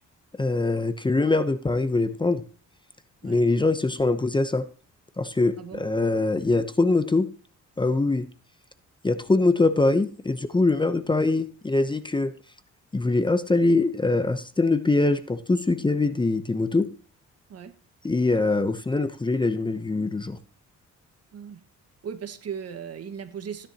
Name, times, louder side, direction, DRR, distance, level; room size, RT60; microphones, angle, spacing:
voice 1, 0.4-2.4 3.2-4.6 5.2-7.3 7.8-8.3 9.0-12.3 12.9-16.9 18.0-20.4, left 3 dB, 15° left, 11 dB, 0.8 m, -23 dB
voice 2, 22.0-23.7, right 7 dB, 55° right, 9 dB, 1.5 m, -37 dB
15.5 x 10.0 x 2.9 m, 0.39 s
cardioid pair, 90°, 30 cm